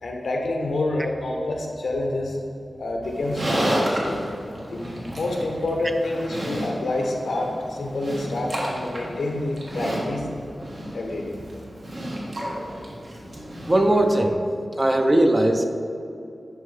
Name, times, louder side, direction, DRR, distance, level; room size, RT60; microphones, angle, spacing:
voice 1, 0.0-2.4 2.8-4.2 4.7-10.3 10.9-11.4, left 2 dB, 90° left, 1 dB, 0.8 m, -28 dB
Livestock farm animals working animals, 3.0-14.3, equal, 60° right, 1.4 m, -31 dB
voice 2, 13.3-14.4 14.8-15.7, right 1 dB, 25° right, 5 dB, 0.5 m, -20 dB
10.5 x 3.7 x 3.2 m, 2.7 s
wide cardioid pair, 70°, 0 cm